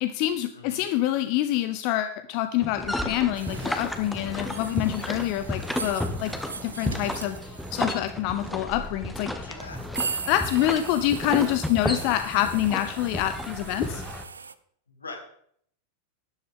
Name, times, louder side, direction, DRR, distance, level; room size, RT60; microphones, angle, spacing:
voice 1, 0.0-6.3 6.6-9.5 10.3-14.0, left 13 dB, 45° left, 10 dB, 0.6 m, -26 dB
voice 2, 0.5-0.8 5.4-5.6 9.4-9.8 14.9-15.2, left 3 dB, 75° left, 2 dB, 2.6 m, -42 dB
sound 1, 2.6-14.2, left 1 dB, 5° left, 1.1 m, -33 dB
sound 2, 3.3-14.5, right 5 dB, 75° right, 0.5 m, -40 dB
12.0 x 10.5 x 3.7 m, 0.66 s
figure-of-eight pair, 90°, 0 cm